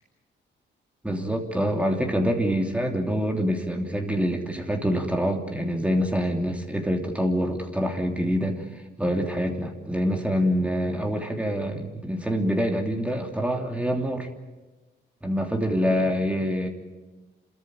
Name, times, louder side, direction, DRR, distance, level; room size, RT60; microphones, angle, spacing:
voice 1, 1.0-14.3 15.2-16.7, equal, 5° right, 2 dB, 3.0 m, -26 dB
29.0 x 13.5 x 9.3 m, 1.2 s
cardioid pair, 90°, 20 cm